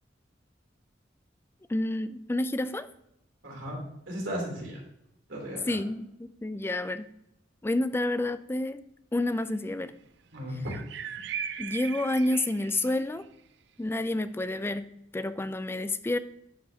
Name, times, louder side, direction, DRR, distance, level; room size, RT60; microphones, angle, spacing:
voice 1, 1.7-2.9 5.7-7.0 7.6-8.8 9.1-9.9 11.6-13.2 13.8-16.2, left 1 dB, 10° left, 12 dB, 0.3 m, -29 dB
voice 2, 3.4-3.8 4.1-4.8 5.3-5.8 10.3-10.7, equal, 85° right, -2 dB, 3.1 m, -35 dB
sound 1, 9.2-9.5 10.6-13.2, right 8 dB, 65° right, 0.5 m, -38 dB
11.0 x 5.5 x 2.8 m, 0.81 s
head